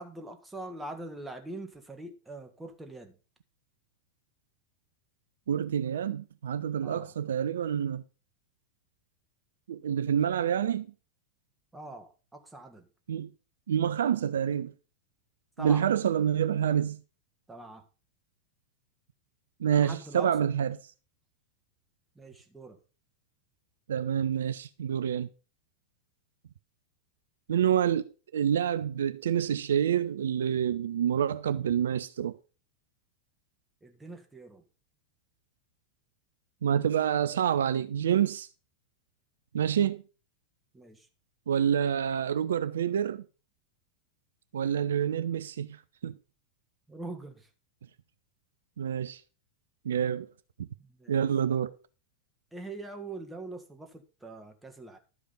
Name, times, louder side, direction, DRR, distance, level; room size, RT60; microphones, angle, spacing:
voice 1, 0.0-3.1 6.8-7.1 11.7-12.9 15.6-15.9 17.5-17.8 19.6-20.4 22.1-22.8 33.8-34.6 40.7-41.1 46.9-47.5 50.7-51.3 52.5-55.0, right 2 dB, 5° right, 1.6 m, -43 dB
voice 2, 5.5-8.0 9.7-10.9 13.1-13.3 13.7-14.7 15.6-17.0 19.6-20.8 23.9-25.3 27.5-32.4 36.6-38.5 39.5-40.0 41.5-43.2 44.5-45.8 46.0-46.1 48.8-49.2 49.9-50.3 50.6-50.7 51.1-51.8, right 9 dB, 65° right, 0.4 m, -27 dB
12.0 x 5.0 x 5.5 m
figure-of-eight pair, 90°, 0 cm